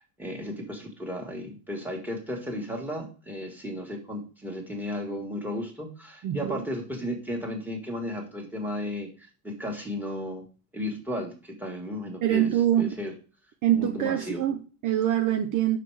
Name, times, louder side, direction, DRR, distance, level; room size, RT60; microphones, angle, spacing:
voice 1, 0.0-10.4 10.7-12.5 12.8-13.1 13.7-14.4, left 1 dB, 5° right, 1.8 m, -34 dB
voice 2, 6.2-6.6 12.2-12.9 13.6-15.8, right 11 dB, 45° right, 0.7 m, -24 dB
5.6 x 5.0 x 4.7 m
cardioid pair, 120°, 43 cm